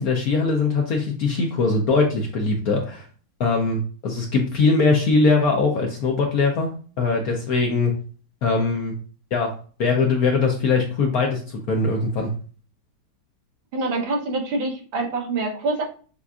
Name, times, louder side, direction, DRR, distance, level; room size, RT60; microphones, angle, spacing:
voice 1, 0.0-3.1 3.4-6.7 7.0-7.9 8.4-8.9 9.3-9.5 9.8-12.3, left 4 dB, 65° left, 2 dB, 0.9 m, -21 dB
voice 2, 13.7-15.8, right 3 dB, 80° right, 1 dB, 1.7 m, -25 dB
6.9 x 2.5 x 2.3 m, 0.40 s
omnidirectional pair, 2.1 m